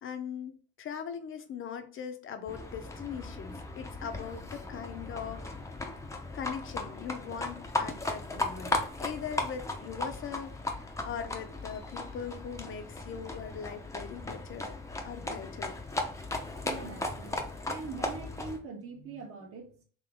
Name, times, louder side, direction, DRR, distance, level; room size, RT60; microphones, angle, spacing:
voice 1, 0.0-5.5 6.3-14.8 15.0-15.8, left 7 dB, 40° left, 8 dB, 0.8 m, -40 dB
Livestock farm animals working animals, 2.5-18.6, left 2 dB, 10° left, 0.7 m, -37 dB
voice 2, 16.6-17.3 17.7-19.8, right 4 dB, 45° right, 2 dB, 1.4 m, -42 dB
3.8 x 3.0 x 3.5 m, 0.42 s
supercardioid pair, 95°, 32 cm